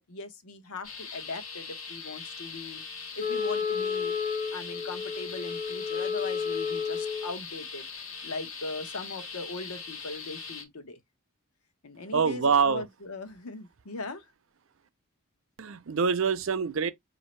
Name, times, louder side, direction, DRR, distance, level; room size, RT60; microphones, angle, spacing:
voice 1, 0.0-2.8 3.1-4.2 4.5-7.9 8.2-11.0 11.8-14.3, left 3 dB, 80° left, 0.9 m, -40 dB
sound 1, 0.8-10.6, left 5 dB, 65° left, 1.2 m, -41 dB
Wind instrument woodwind instrument, 3.2-7.3, left 6 dB, 40° left, 0.8 m, -31 dB
voice 2, 12.1-12.8 15.6-16.9, right 5 dB, 60° right, 0.5 m, -25 dB
5.0 x 2.7 x 3.1 m
head